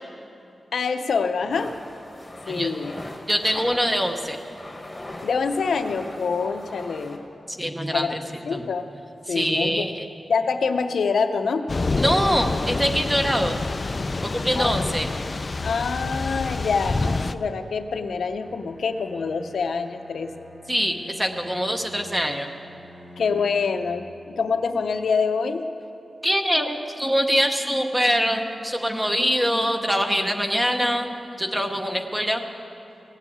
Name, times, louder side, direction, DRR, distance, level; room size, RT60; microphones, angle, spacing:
voice 1, 0.7-1.8 2.5-2.9 3.5-3.7 5.2-7.2 7.9-8.9 9.3-9.8 10.3-11.6 14.5-15.0 15.6-20.3 23.2-25.6, left 5 dB, 75° left, 7 dB, 0.6 m, -26 dB
sound 1, 1.5-7.2, left 1 dB, 15° left, 1.3 m, -41 dB
voice 2, 3.3-4.4 7.5-8.2 8.5-8.6 9.3-10.0 12.0-13.6 14.2-15.1 20.7-22.5 26.2-32.4, equal, 10° right, 4 dB, 0.8 m, -24 dB
Thunder / Rain, 11.7-17.3, left 3 dB, 30° left, 0.3 m, -27 dB
Bowed string instrument, 18.4-24.1, left 1 dB, 35° right, 2.0 m, -46 dB
17.0 x 7.3 x 8.4 m, 2.7 s
wide cardioid pair, 175°, 0 cm